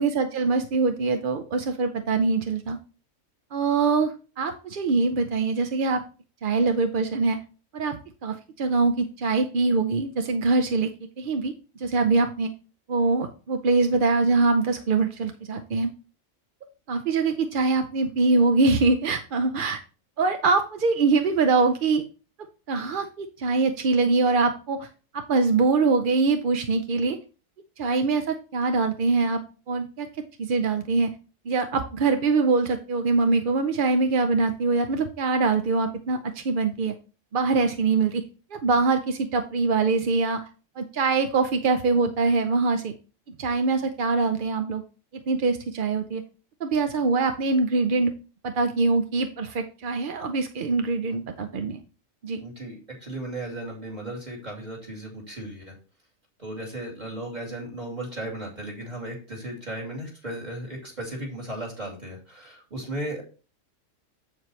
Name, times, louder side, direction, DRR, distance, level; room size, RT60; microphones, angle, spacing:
voice 1, 0.0-2.8 3.5-6.0 6.4-7.4 7.7-10.9 11.2-12.5 12.9-15.9 16.9-19.8 20.2-22.0 22.7-24.9 25.1-27.2 27.8-29.4 29.7-30.1 30.4-31.1 31.5-36.9 37.3-38.2 38.5-40.4 40.8-42.9 43.4-44.8 45.3-46.2 46.6-48.1 48.4-51.8 52.2-52.4, right 3 dB, 50° right, 7 dB, 0.6 m, -23 dB
voice 2, 52.4-55.8 56.4-63.2, right 1 dB, 30° right, -2 dB, 2.8 m, -36 dB
7.8 x 7.3 x 3.2 m, 0.36 s
omnidirectional pair, 1.4 m